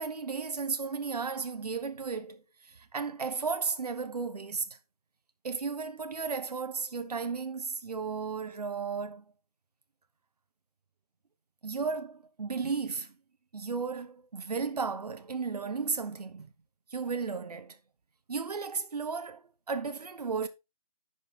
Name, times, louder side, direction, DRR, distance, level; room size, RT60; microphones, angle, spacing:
voice 1, 0.0-4.8 5.4-9.2 11.6-13.1 13.5-16.5 16.9-17.8 18.3-20.5, right 5 dB, 85° right, 1.2 m, -34 dB
10.0 x 5.5 x 3.7 m
hypercardioid pair, 180°, 20 cm